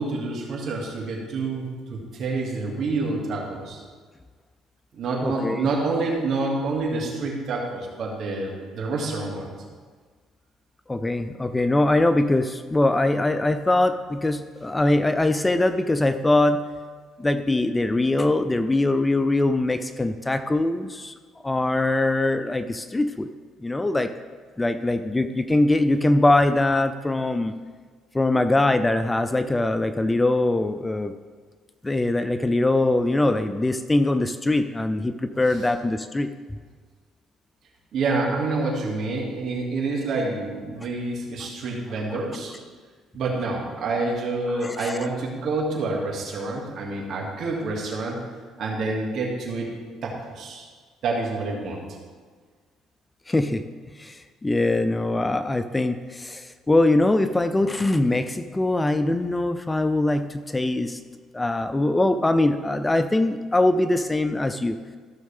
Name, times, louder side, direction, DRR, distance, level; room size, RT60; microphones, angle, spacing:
voice 1, 0.0-1.6 1.9-3.8 4.9-9.5 35.4-35.6 37.9-42.5 43.1-48.2 48.6-49.7 50.0-50.6 51.0-51.8, right 3 dB, 60° right, -2 dB, 2.3 m, -27 dB
voice 2, 5.2-5.7 10.9-16.6 17.2-21.1 21.4-23.3 23.6-24.1 24.6-27.6 28.1-31.1 31.8-36.3 44.5-44.9 53.3-53.6 54.0-61.0 61.3-64.8, left 2 dB, 15° left, 10 dB, 0.4 m, -22 dB
14.5 x 6.4 x 3.6 m, 1.5 s
cardioid pair, 105°, 0 cm